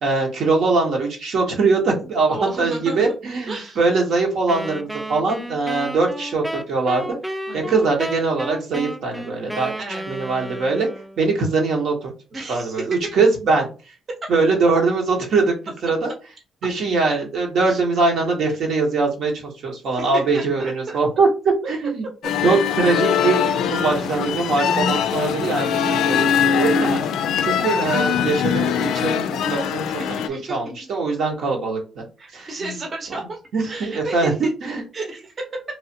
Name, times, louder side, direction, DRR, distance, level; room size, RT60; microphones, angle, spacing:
voice 1, 0.0-7.2 7.5-9.7 10.1-10.9 11.2-12.1 12.5-13.7 14.3-15.5 15.8-16.1 16.6-19.3 19.6-21.3 21.7-22.0 22.4-27.0 27.4-29.8 30.1-32.0 32.3-32.7 33.5-34.8, right 3 dB, 70° right, 1 dB, 1.0 m, -22 dB
voice 2, 2.3-3.2 3.5-3.8 7.5-7.7 9.8-10.0 12.3-13.0 14.2-14.3 17.7-17.8 20.0-21.0 22.4-22.7 24.8-24.9 27.4-27.7 29.8-30.6 32.2-33.4 33.7-34.5 34.9-35.6, right 3 dB, 40° right, 1 dB, 0.8 m, -33 dB
Wind instrument woodwind instrument, 4.5-11.3, right 1 dB, 5° right, 0.4 m, -32 dB
sound 1, 22.2-30.3, left 8 dB, 85° left, 0.3 m, -22 dB
3.1 x 2.4 x 2.7 m, 0.33 s
cardioid pair, 95°, 0 cm